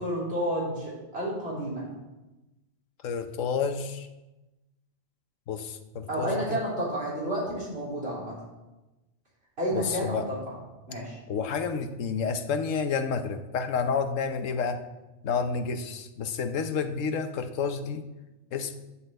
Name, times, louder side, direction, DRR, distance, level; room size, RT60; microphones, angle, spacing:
voice 1, 0.0-1.9 6.1-8.3 9.6-10.5 10.9-11.2, equal, 55° right, -6 dB, 4.2 m, -31 dB
voice 2, 3.0-4.1 5.5-6.6 9.7-10.2 11.3-14.8 15.2-18.0 18.5-18.7, left 5 dB, 90° left, 9 dB, 1.2 m, -30 dB
10.0 x 5.5 x 7.8 m, 1.1 s
omnidirectional pair, 1.3 m